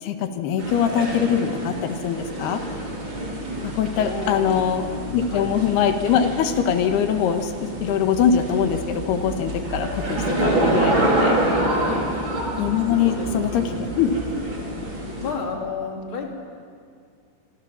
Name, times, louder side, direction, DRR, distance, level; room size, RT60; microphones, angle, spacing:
voice 1, 0.0-2.7 3.6-4.9 5.1-11.4 12.6-13.7 14.0-14.4, left 8 dB, 70° left, 7 dB, 3.2 m, -22 dB
sound 1, 0.6-15.3, right 1 dB, 25° right, 4.4 m, -27 dB
voice 2, 4.0-5.5 11.7-12.0 12.8-14.0 15.2-16.3, left 4 dB, 30° left, 1 dB, 3.2 m, -32 dB
sound 2, 8.1-14.4, right 1 dB, 90° right, 5.9 m, -38 dB
27.0 x 25.5 x 7.3 m, 2.2 s
omnidirectional pair, 5.3 m